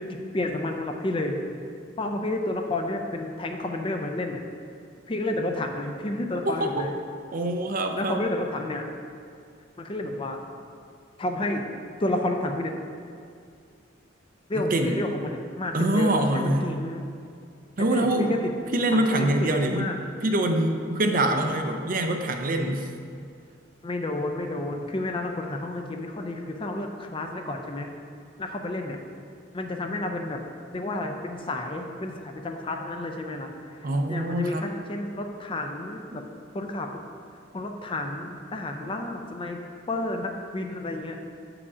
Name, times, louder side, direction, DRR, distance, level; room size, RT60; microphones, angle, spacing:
voice 1, 0.0-1.4 2.0-4.5 5.1-6.9 7.9-8.9 9.8-10.4 11.2-11.7 12.0-12.7 14.5-17.1 17.9-18.4 18.9-20.0 23.8-27.9 28.4-29.0 29.5-30.4 30.7-36.3 36.5-37.1 37.5-41.2, left 2 dB, 25° left, 4 dB, 0.5 m, -31 dB
voice 2, 6.4-6.9 7.3-8.2 14.5-15.0 15.7-16.7 17.8-18.3 18.7-19.9 20.2-22.9 33.8-34.7 36.1-36.2, right 1 dB, 45° right, 4 dB, 0.5 m, -24 dB
6.9 x 4.9 x 4.9 m, 2.3 s
head